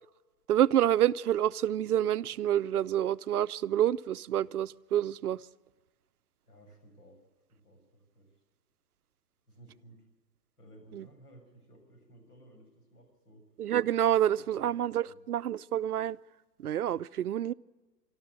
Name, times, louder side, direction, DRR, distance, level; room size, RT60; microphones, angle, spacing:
voice 1, 0.5-5.4 10.9-11.1 13.6-16.2 16.6-17.5, right 11 dB, 65° right, 0.6 m, -28 dB
voice 2, 6.4-7.2 7.5-8.3 9.5-10.1 10.6-13.4 14.5-14.8 15.1-15.2, right 1 dB, 65° left, 7.1 m, -56 dB
25.0 x 13.0 x 9.1 m
hypercardioid pair, 140°, 49 cm